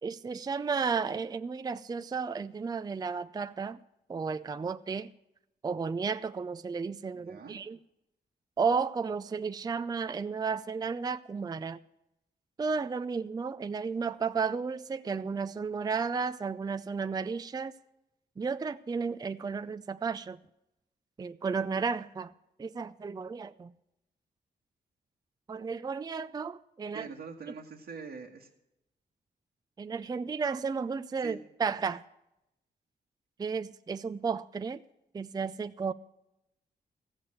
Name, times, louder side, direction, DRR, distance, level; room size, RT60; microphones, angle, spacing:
voice 1, 0.0-3.8 4.1-5.1 5.6-7.8 8.6-11.8 12.6-17.7 18.4-20.4 21.2-22.3 22.6-23.7 25.5-27.1 29.8-32.0 33.4-34.8 35.1-35.9, right 5 dB, 20° right, 0.4 m, -33 dB
voice 2, 7.1-7.6 26.9-28.5 31.2-31.4, right 5 dB, 70° right, 1.4 m, -44 dB
15.0 x 7.8 x 7.6 m
cardioid pair, 110°, 18 cm